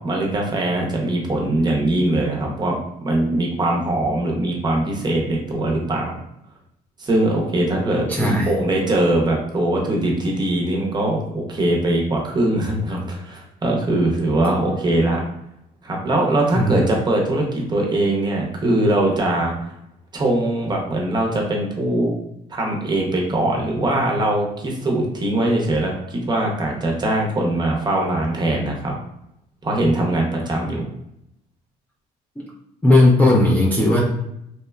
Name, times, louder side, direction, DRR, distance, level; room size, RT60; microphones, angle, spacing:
voice 1, 0.0-6.2 7.0-15.2 15.8-19.5 20.1-22.2 22.5-28.9 29.6-30.9, right 1 dB, 25° right, -1 dB, 0.7 m, -21 dB
voice 2, 8.1-8.5 16.6-16.9 32.4-32.5 32.8-34.0, left 1 dB, 10° left, -4 dB, 0.4 m, -16 dB
2.8 x 2.1 x 2.2 m, 0.80 s
cardioid pair, 110°, 17 cm